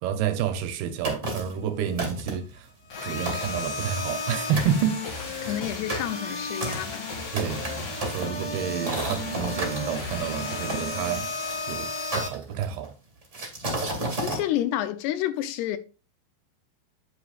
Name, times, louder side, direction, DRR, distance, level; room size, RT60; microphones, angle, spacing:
voice 1, 0.0-2.7 3.0-5.0 7.3-11.3 11.7-12.9, right 8 dB, 75° right, 2.6 m, -29 dB
sound 1, 1.0-1.6 2.0-2.5 3.0-3.1 3.3-4.3 4.6-4.8 5.3-9.8 10.7-11.6 12.1-12.9 13.3-14.4, right 1 dB, 20° right, 2.0 m, -32 dB
sound 2, 2.9-12.3, left 3 dB, 40° left, 2.4 m, -33 dB
voice 2, 5.5-7.1 14.2-15.8, left 12 dB, 80° left, 2.7 m, -29 dB
8.7 x 8.2 x 2.4 m
omnidirectional pair, 4.9 m